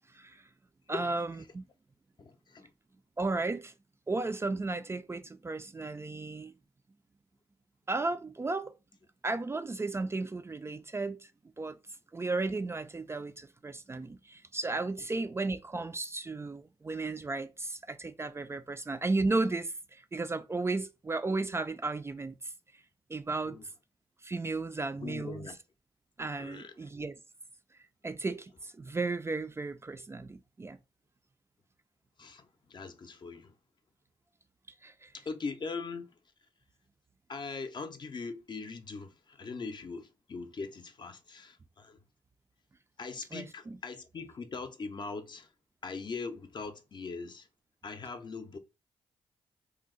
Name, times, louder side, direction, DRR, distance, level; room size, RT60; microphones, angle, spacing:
voice 1, 0.9-1.6 3.2-3.7 4.1-6.5 7.9-8.7 9.2-11.3 11.6-11.8 12.1-22.4 23.1-23.6 24.2-25.5 26.2-27.2 28.0-30.8 34.8-35.1 43.3-43.8, right 3 dB, 25° right, 0.3 m, -34 dB
voice 2, 2.2-2.7 23.5-23.6 25.0-25.6 26.4-26.7 28.2-28.3 32.2-33.5 35.1-36.1 37.3-42.0 43.0-45.5 45.8-47.5 47.8-48.6, left 4 dB, 45° left, 0.5 m, -41 dB
2.7 x 2.0 x 3.7 m
cardioid pair, 65°, 11 cm